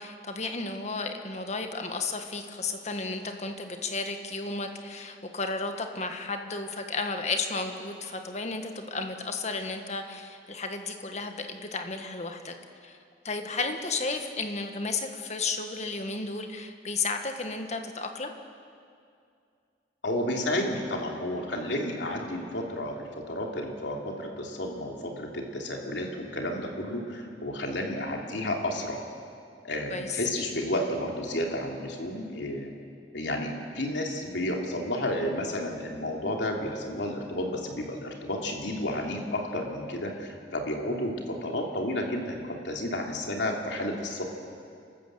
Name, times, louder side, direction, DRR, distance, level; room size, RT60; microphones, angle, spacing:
voice 1, 0.0-12.5 12.8-13.0 13.2-18.3 29.9-30.2, left 3 dB, 40° left, 5 dB, 1.6 m, -33 dB
voice 2, 20.0-29.1 29.6-32.7 33.1-44.2, left 1 dB, 90° left, 0 dB, 3.1 m, -31 dB
28.5 x 13.5 x 7.8 m, 2.4 s
head